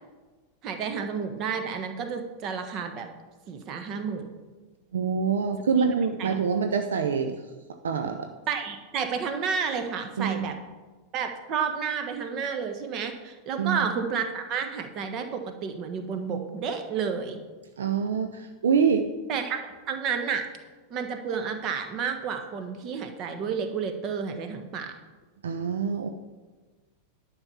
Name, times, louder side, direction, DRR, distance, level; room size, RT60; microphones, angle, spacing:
voice 1, 0.6-3.1 3.5-4.3 6.2-6.4 8.5-10.5 11.1-17.4 19.3-20.5 20.9-24.9, right 6 dB, 35° right, 6 dB, 1.4 m, -31 dB
voice 2, 4.9-7.4 7.8-8.3 10.2-10.5 13.6-13.9 17.8-19.1 25.4-26.1, right 6 dB, 65° right, 6 dB, 0.7 m, -25 dB
11.0 x 5.9 x 7.2 m, 1.3 s
figure-of-eight pair, 90°, 0 cm